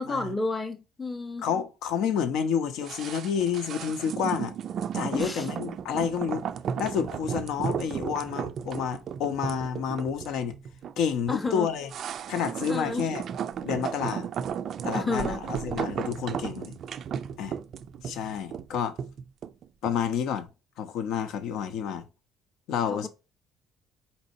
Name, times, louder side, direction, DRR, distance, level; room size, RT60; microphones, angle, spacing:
voice 1, 0.0-1.4 5.1-5.5 11.3-11.7 12.7-13.1 14.9-15.4 22.9-23.1, left 3 dB, 10° left, 0.6 m, -31 dB
voice 2, 1.4-4.5 4.9-6.5 6.8-10.5 11.0-11.9 12.3-13.2 13.6-14.3 14.8-16.8 17.4-17.6 18.0-19.0 19.8-20.5 20.8-22.1 22.7-23.1, left 7 dB, 65° left, 0.7 m, -29 dB
sound 1, 2.8-20.1 20.4-20.5, right 8 dB, 40° right, 0.3 m, -34 dB
4.2 x 3.9 x 2.6 m
cardioid pair, 175°, 0 cm